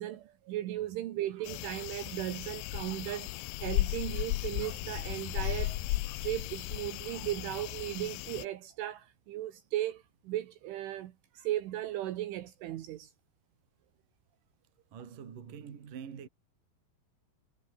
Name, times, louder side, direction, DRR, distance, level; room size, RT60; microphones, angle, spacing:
voice 1, 0.0-3.3 3.6-5.8 6.2-13.1, right 13 dB, 75° right, 4.0 m, -36 dB
sound 1, 1.4-8.5, left 19 dB, 80° left, 3.0 m, -35 dB
sound 2, 4.5-7.0, left 6 dB, 45° left, 5.0 m, -47 dB
voice 2, 14.9-16.3, right 7 dB, 45° right, 4.2 m, -45 dB
omnidirectional pair, 5.6 m